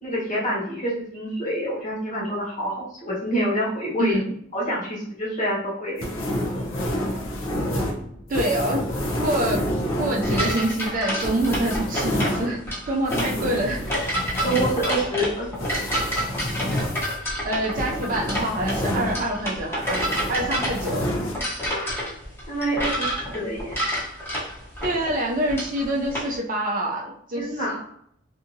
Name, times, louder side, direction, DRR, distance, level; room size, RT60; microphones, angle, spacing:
voice 1, 0.0-4.1 4.5-6.2 14.4-15.5 15.7-15.8 21.6-22.2 22.5-23.1 23.3-23.7 27.3-27.8, equal, 40° left, -6 dB, 1.1 m, -27 dB
sound 1, 6.0-19.5 19.8-21.3, equal, 80° left, 0.6 m, -29 dB
voice 2, 8.3-8.9 9.2-9.7 10.0-13.8 17.4-21.1 24.8-27.5, right 1 dB, 40° right, -1 dB, 0.4 m, -26 dB
sound 2, 10.2-26.3, equal, 10° left, 0.7 m, -29 dB
2.7 x 2.5 x 2.6 m, 0.67 s
head